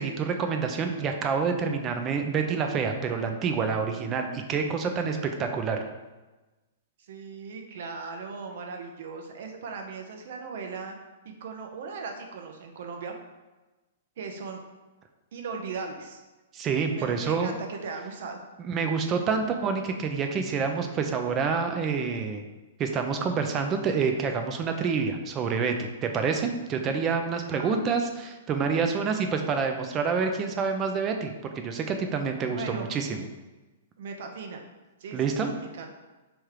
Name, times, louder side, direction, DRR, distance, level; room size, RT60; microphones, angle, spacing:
voice 1, 0.0-5.8 16.5-17.5 18.6-22.4 22.8-33.3 35.1-35.5, right 5 dB, 30° right, 5 dB, 0.5 m, -27 dB
voice 2, 7.1-10.9 11.2-13.1 14.2-14.6 15.3-16.2 16.9-18.4 27.5-27.9 32.5-32.9 34.0-34.6 35.0-35.9, right 4 dB, 60° right, 3 dB, 0.8 m, -38 dB
3.6 x 3.0 x 4.8 m, 1.1 s
hypercardioid pair, 125°, 0 cm